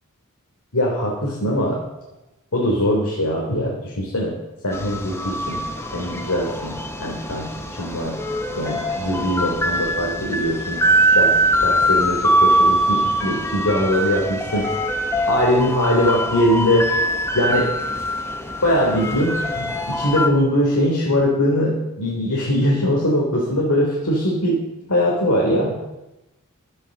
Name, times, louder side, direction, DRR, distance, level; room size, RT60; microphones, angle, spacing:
voice 1, 0.7-1.8 2.5-4.3 4.6-5.6 5.9-7.5 7.8-8.2 8.6-10.8 11.2-11.3 11.6-14.7 15.3-16.9 17.3-17.7 18.6-24.6 24.9-25.7, equal, 90° left, -3 dB, 3.5 m, -21 dB
sound 1, 4.7-20.3, right 1 dB, 10° left, 1.3 m, -22 dB
12.5 x 10.5 x 6.6 m, 0.96 s
head